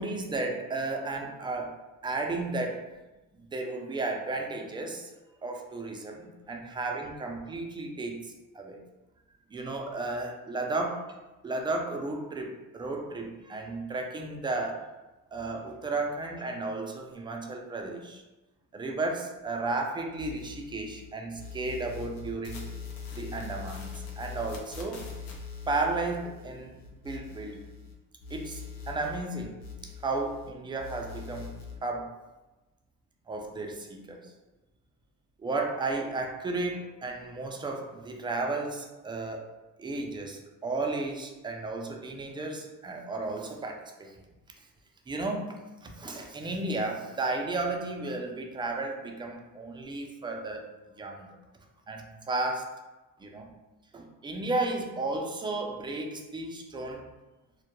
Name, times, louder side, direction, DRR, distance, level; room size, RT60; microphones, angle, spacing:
voice 1, 0.0-1.7 2.0-2.8 3.4-5.1 5.4-8.8 9.5-11.1 11.4-14.9 15.3-18.2 18.7-22.7 23.2-25.1 25.7-26.8 27.0-27.7 28.3-29.6 29.8-32.1 33.3-34.2 35.4-39.5 39.8-44.2 45.1-50.6 51.0-51.3 51.9-52.7 53.2-53.5 53.9-57.0, right 2 dB, 15° right, 2 dB, 0.3 m, -33 dB
Tube Static Ambience, 20.2-21.1 21.3-27.9 28.2-30.5 30.8-31.8, left 6 dB, 75° left, 0.6 m, -42 dB
2.2 x 2.0 x 2.9 m, 1.1 s
cardioid pair, 85°, 35 cm